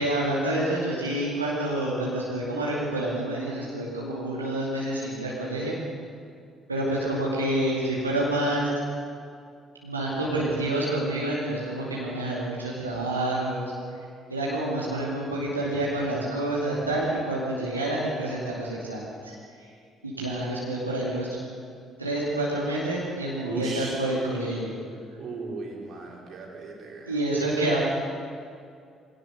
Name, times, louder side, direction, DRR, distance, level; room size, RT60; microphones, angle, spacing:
voice 1, 0.0-5.8 6.7-8.7 9.8-13.7 14.3-19.3 20.0-21.4 22.0-24.7 27.1-27.8, right 1 dB, 85° right, -6 dB, 2.5 m, -28 dB
voice 2, 23.5-24.1 25.2-27.1, right 3 dB, 50° right, -1 dB, 4.2 m, -36 dB
22.5 x 17.5 x 6.7 m, 2.3 s
figure-of-eight pair, 45°, 0 cm